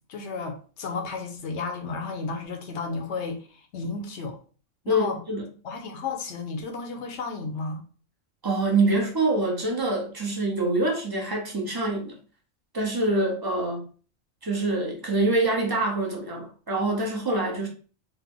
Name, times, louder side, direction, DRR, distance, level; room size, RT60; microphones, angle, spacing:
voice 1, 0.1-4.4 4.8-5.2 5.6-7.8, left 4 dB, 65° left, 0.9 m, -33 dB
voice 2, 4.9-5.4 8.4-12.2 12.7-13.9 14.4-17.7, right 2 dB, 25° right, 0.5 m, -25 dB
3.3 x 2.0 x 3.5 m
omnidirectional pair, 1.3 m